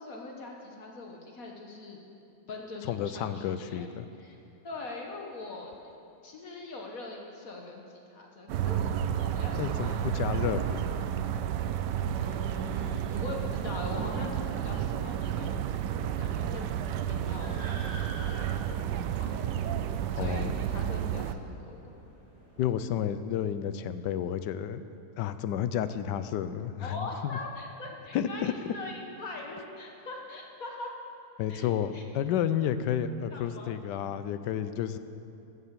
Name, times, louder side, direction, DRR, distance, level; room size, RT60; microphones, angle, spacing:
voice 1, 0.0-2.0 2.5-3.9 4.2-4.4 4.6-5.9 6.2-7.8 8.1-10.2 10.6-10.7 12.1-15.5 16.0-18.1 19.2-19.6 20.1-21.8 26.8-30.9 31.5-31.7 31.9-32.0 33.3-33.7, left 3 dB, 60° left, 1 dB, 1.5 m, -42 dB
voice 2, 2.9-4.1 9.6-11.1 20.1-20.5 22.6-24.8 25.2-27.4 28.1-28.7 31.4-35.0, left 9 dB, 90° left, 12 dB, 1.3 m, -31 dB
sound 1, 8.5-21.3, right 9 dB, 85° right, 1.2 m, -31 dB
sound 2, 16.8-22.9, right 1 dB, 10° left, 4.0 m, -49 dB
14.0 x 7.8 x 7.4 m, 2.7 s
omnidirectional pair, 1.8 m